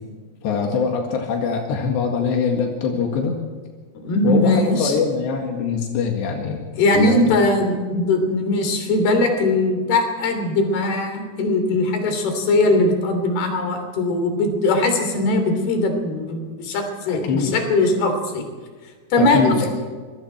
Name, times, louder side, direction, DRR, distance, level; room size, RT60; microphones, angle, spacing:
voice 1, 0.4-3.4 4.2-6.6 6.9-7.2 17.1-17.5 19.2-19.7, left 5 dB, 90° left, 2 dB, 4.2 m, -22 dB
voice 2, 4.0-5.0 6.7-18.5 19.1-19.8, left 2 dB, 70° left, 5 dB, 5.1 m, -20 dB
26.0 x 22.5 x 4.5 m, 1.5 s
omnidirectional pair, 4.8 m